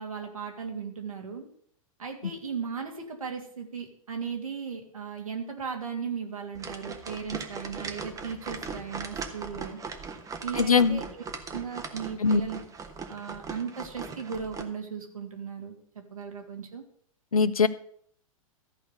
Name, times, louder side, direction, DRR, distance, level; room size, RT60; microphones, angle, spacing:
voice 1, 0.0-1.5 2.0-9.8 10.4-12.6 13.1-15.7 16.1-16.8, right 6 dB, 75° right, 2 dB, 2.6 m, -37 dB
sound 1, 6.5-14.6, right 5 dB, 20° right, 1.3 m, -39 dB
voice 2, 10.5-11.0 12.2-12.4 17.3-17.7, left 5 dB, 85° left, 15 dB, 0.7 m, -21 dB
14.0 x 4.9 x 7.9 m, 0.62 s
figure-of-eight pair, 100°, 18 cm